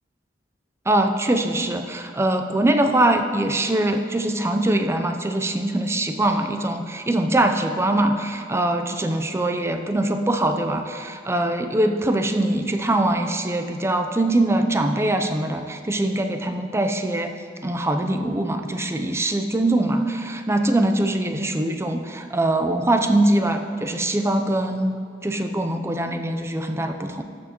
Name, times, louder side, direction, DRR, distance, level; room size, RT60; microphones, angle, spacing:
voice 1, 0.9-17.3 17.6-27.2, right 1 dB, 15° right, 6 dB, 0.5 m, -22 dB
12.5 x 7.0 x 3.0 m, 2.3 s
head